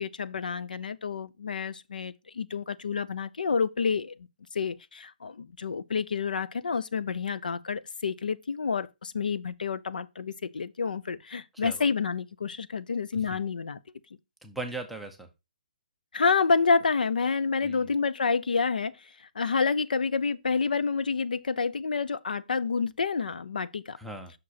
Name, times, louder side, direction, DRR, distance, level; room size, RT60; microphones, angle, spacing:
voice 1, 0.0-4.2 4.5-13.8 16.1-24.0, left 5 dB, 80° left, 0.5 m, -29 dB
voice 2, 14.4-15.3 17.6-17.9 24.0-24.3, right 2 dB, ahead, 0.5 m, -39 dB
6.0 x 4.9 x 4.0 m
hypercardioid pair, 170°, 5 cm